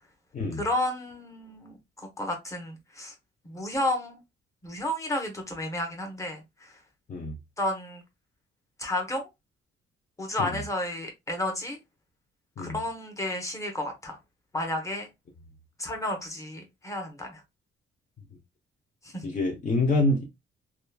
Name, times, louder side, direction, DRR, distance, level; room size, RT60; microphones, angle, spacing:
voice 1, 0.6-3.1 3.4-4.2 4.6-6.8 7.6-8.0 8.8-9.3 10.2-11.8 12.6-14.2 14.5-15.1 15.8-17.4 19.0-19.3, left 1 dB, 15° left, 1.0 m, -32 dB
voice 2, 19.2-20.2, left 2 dB, 40° left, 0.7 m, -26 dB
2.9 x 2.4 x 2.2 m
cardioid pair, 90°, 20 cm